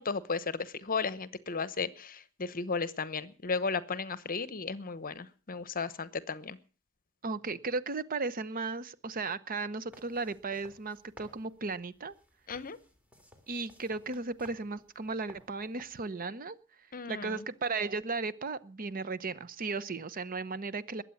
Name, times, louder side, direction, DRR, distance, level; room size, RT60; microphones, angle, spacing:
voice 1, 0.0-6.6 12.5-12.8 16.9-17.4, left 4 dB, 40° left, 15 dB, 1.0 m, -35 dB
voice 2, 7.2-12.1 13.5-16.6 17.1-21.0, right 3 dB, 40° right, 16 dB, 0.8 m, -35 dB
sound 1, 9.9-16.1, equal, 5° right, 2.8 m, -58 dB
21.5 x 8.5 x 7.2 m, 0.39 s
head